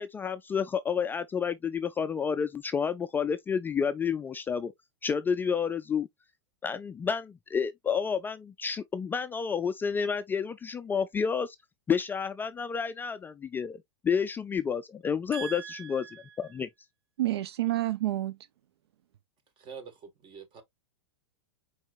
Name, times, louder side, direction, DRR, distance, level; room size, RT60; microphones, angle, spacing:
voice 1, 0.0-4.7 5.0-6.1 6.6-11.6 11.9-13.8 14.0-16.7, left 6 dB, 15° left, 0.3 m, -30 dB
voice 2, 15.3-16.2 17.2-18.4, right 15 dB, 70° right, 0.4 m, -30 dB
voice 3, 19.6-20.6, right 6 dB, 35° right, 1.6 m, -46 dB
4.8 x 4.2 x 2.5 m
hypercardioid pair, 105°, 14 cm